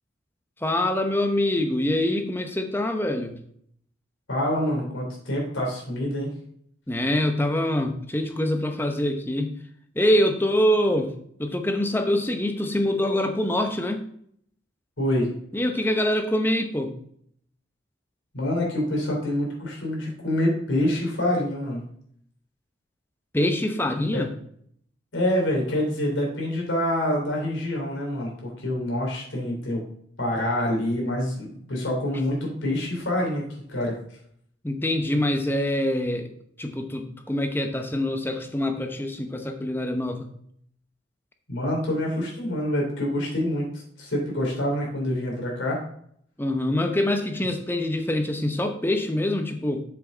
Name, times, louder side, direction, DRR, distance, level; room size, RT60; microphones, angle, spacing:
voice 1, 0.6-3.4 6.9-9.6 9.9-14.1 15.5-16.9 23.3-24.3 34.6-36.3 36.6-40.3 46.4-49.8, left 1 dB, 10° left, 6 dB, 0.8 m, -25 dB
voice 2, 4.3-6.3 15.0-15.3 18.3-21.8 24.1-24.2 25.1-29.8 30.2-33.4 33.7-33.9 41.5-45.8, left 1 dB, 85° left, -1 dB, 3.4 m, -26 dB
7.4 x 7.1 x 3.9 m, 0.66 s
head